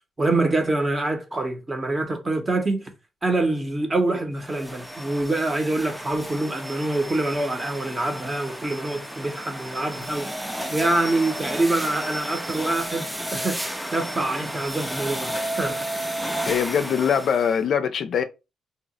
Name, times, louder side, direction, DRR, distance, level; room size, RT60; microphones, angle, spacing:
voice 1, 0.2-2.9 3.2-15.9, right 2 dB, 25° right, 0.7 m, -25 dB
sound 1, 4.4-17.6, equal, 5° right, 0.4 m, -33 dB
voice 2, 16.4-18.2, left 7 dB, 60° left, 0.4 m, -22 dB
2.7 x 2.0 x 4.0 m
cardioid pair, 110°, 0 cm